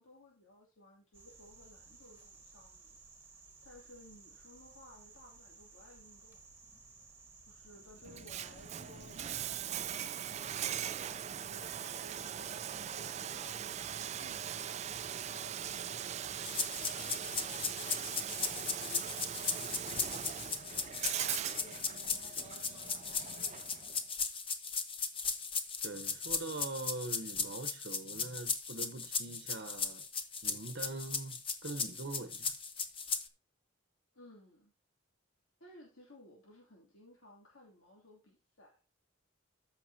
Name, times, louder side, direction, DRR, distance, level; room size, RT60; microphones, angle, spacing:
voice 1, 0.0-3.0 3.6-6.4 7.5-19.7 21.1-23.9 34.1-34.7 35.6-38.8, left 1 dB, 85° left, 2.7 m, -58 dB
sound 1, 1.1-10.0, right 4 dB, 10° right, 1.5 m, -57 dB
Bathtub (filling or washing), 8.0-24.0, right 9 dB, 35° right, 0.3 m, -40 dB
sound 2, 16.4-33.3, left 5 dB, 25° left, 0.9 m, -37 dB
voice 2, 25.8-30.1 30.4-32.5, right 2 dB, 55° right, 0.9 m, -43 dB
14.0 x 5.9 x 2.8 m
head